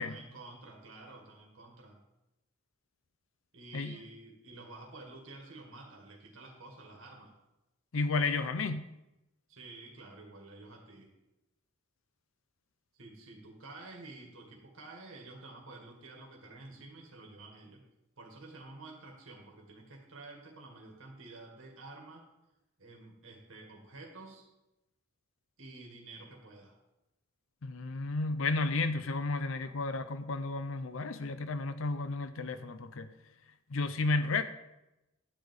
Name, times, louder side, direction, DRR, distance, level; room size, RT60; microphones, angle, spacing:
voice 1, 0.0-2.0 3.5-7.4 9.5-11.1 12.9-17.8 18.2-22.3 22.8-24.5 25.6-26.8, right 2 dB, 70° right, 1 dB, 1.8 m, -50 dB
voice 2, 7.9-8.9 27.6-33.1 33.7-34.4, left 3 dB, 70° left, 11 dB, 0.6 m, -32 dB
11.5 x 5.0 x 8.0 m, 0.94 s
head